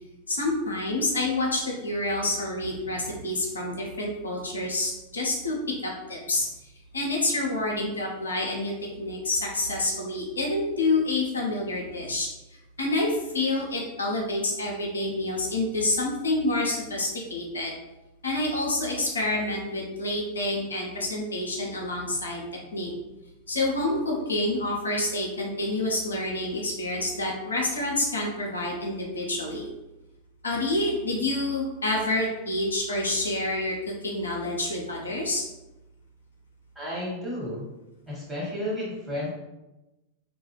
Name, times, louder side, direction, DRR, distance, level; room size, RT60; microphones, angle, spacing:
voice 1, 0.3-5.6 5.8-6.5 6.9-8.7 9.0-17.7 18.2-22.4 22.7-22.9 23.5-29.7 30.4-35.4, left 2 dB, 75° left, -2 dB, 0.5 m, -28 dB
voice 2, 36.7-37.7 38.1-39.3, left 1 dB, 5° right, -8 dB, 1.5 m, -32 dB
2.3 x 2.3 x 3.0 m, 0.99 s
figure-of-eight pair, 90°, 0 cm